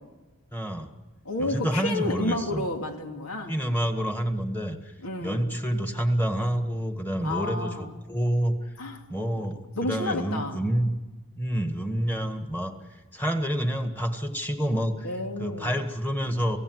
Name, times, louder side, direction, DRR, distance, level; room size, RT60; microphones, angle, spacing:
voice 1, 0.5-0.9 1.4-2.6 3.5-4.9 5.2-8.5 9.1-10.9 11.4-12.7 13.1-15.1 15.4-16.6, equal, 10° left, 6 dB, 1.9 m, -28 dB
voice 2, 1.2-3.5 5.0-5.6 7.2-7.9 8.8-9.0 9.8-10.6 15.0-15.8, left 2 dB, 90° left, 3 dB, 2.6 m, -31 dB
28.0 x 16.5 x 8.1 m, 1.2 s
head